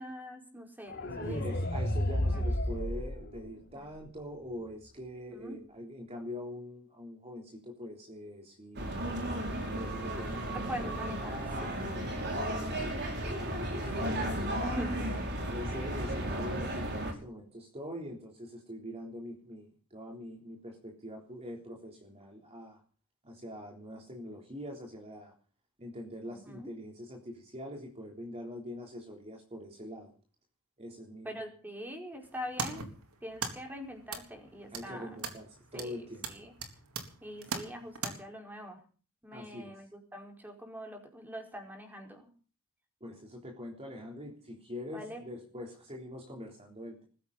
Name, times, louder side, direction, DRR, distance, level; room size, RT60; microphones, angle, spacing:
voice 1, 0.0-1.7 2.2-2.4 3.7-3.8 5.3-5.6 10.5-11.8 13.6-15.1 26.2-26.7 31.2-32.9 33.2-35.2 35.7-36.5 37.2-38.8 39.2-42.3 44.9-45.2, equal, 10° right, 3 dB, 4.9 m, -43 dB
sound 1, 0.9-3.9, left 1 dB, 45° left, 7.0 m, -32 dB
voice 2, 1.3-9.0 9.6-10.9 11.2-13.2 13.5-13.9 15.5-22.8 23.2-25.3 25.8-30.1 30.8-31.4 34.7-36.2 39.3-39.8 43.0-47.0, left 1 dB, 30° right, 0 dB, 3.6 m, -44 dB
sound 2, 8.8-17.1, right 1 dB, 50° right, 5.4 m, -34 dB
sound 3, 32.2-38.1, right 5 dB, 85° right, 3.7 m, -41 dB
21.0 x 16.0 x 4.2 m, 0.39 s
head